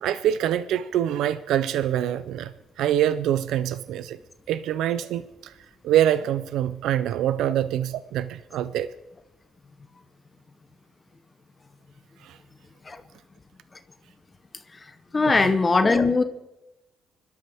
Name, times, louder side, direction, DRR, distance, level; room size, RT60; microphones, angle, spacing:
voice 1, 0.0-4.2 4.5-5.5 5.8-8.9 12.2-12.4 15.3-15.5, right 11 dB, 85° right, 14 dB, 0.5 m, -25 dB
voice 2, 14.7-16.2, left 3 dB, 25° left, 10 dB, 0.8 m, -21 dB
25.5 x 12.5 x 3.5 m, 0.97 s
cardioid pair, 90°, 0 cm